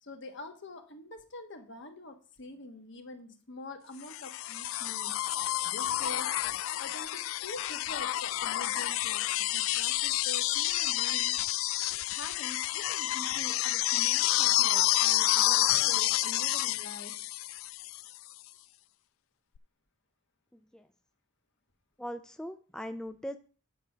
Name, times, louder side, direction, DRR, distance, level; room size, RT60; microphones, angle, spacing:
voice 1, 0.0-5.2 5.6-6.4 6.8-11.6 12.1-17.1, left 2 dB, 60° left, 6 dB, 1.3 m, -45 dB
sound 1, 4.1-18.1 19.6-19.7, left 15 dB, 80° left, 0.3 m, -29 dB
voice 2, 22.0-23.4, equal, 5° left, 9 dB, 0.3 m, -39 dB
9.3 x 5.3 x 6.0 m, 0.41 s
head